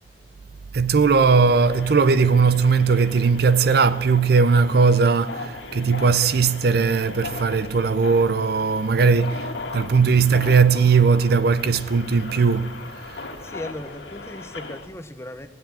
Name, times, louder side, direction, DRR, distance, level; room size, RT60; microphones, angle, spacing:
voice 1, 0.7-13.2, right 5 dB, 60° right, 0.6 m, -19 dB
sound 1, 1.5-14.9, left 3 dB, 80° left, 1.9 m, -38 dB
voice 2, 13.4-15.5, left 1 dB, 15° left, 0.9 m, -37 dB
17.0 x 8.1 x 8.6 m
head